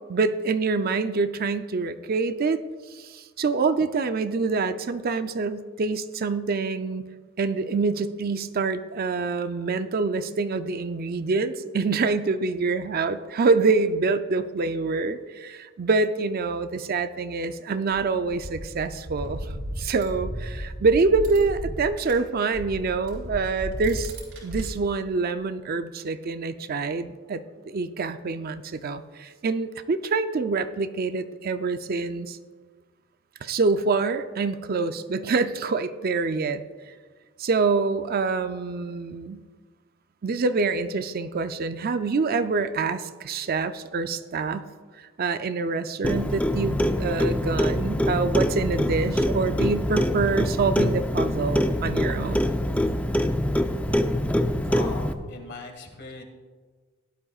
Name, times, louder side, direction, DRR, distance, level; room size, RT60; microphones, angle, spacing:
voice 1, 0.1-2.6 2.9-7.0 7.4-19.4 19.8-24.1 24.4-32.4 33.4-36.6 37.4-39.4 40.2-44.6 45.2-52.5, right 4 dB, 45° right, 10 dB, 0.5 m, -26 dB
sound 1, 17.9-22.2 22.5-24.6, equal, 80° right, 3.6 m, -35 dB
Clock, 46.0-55.1, equal, 5° left, 0.5 m, -24 dB
voice 2, 54.7-56.2, left 2 dB, 55° left, 3 dB, 1.9 m, -39 dB
16.5 x 11.5 x 2.4 m, 1.5 s
head